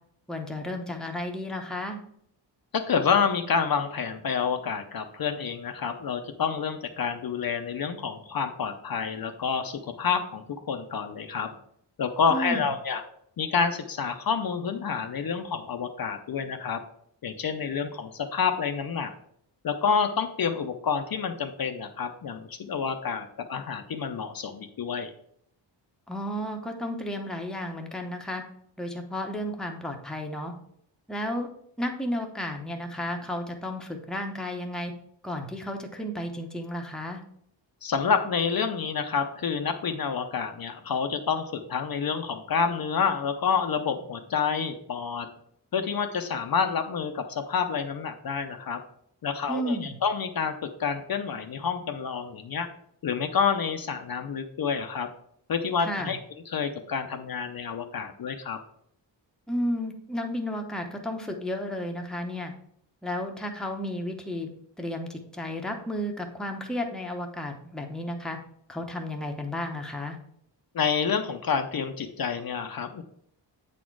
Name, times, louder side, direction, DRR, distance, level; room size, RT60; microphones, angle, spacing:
voice 1, 0.3-2.0 12.3-12.6 26.1-28.4 28.8-30.5 31.1-31.5 31.8-34.9 35.2-37.2 49.5-49.9 55.8-56.1 59.5-62.5 63.0-64.5 64.8-68.4 68.7-70.2, left 1 dB, ahead, 3 dB, 0.7 m, -32 dB
voice 2, 2.7-11.5 12.0-13.0 13.4-16.8 17.2-19.1 19.6-25.1 37.8-45.3 45.7-48.8 49.2-52.7 53.0-55.1 55.5-56.2 56.5-58.6 70.7-73.0, left 6 dB, 50° left, 6 dB, 0.6 m, -28 dB
8.2 x 4.2 x 4.6 m, 0.70 s
wide cardioid pair, 140°, 45 cm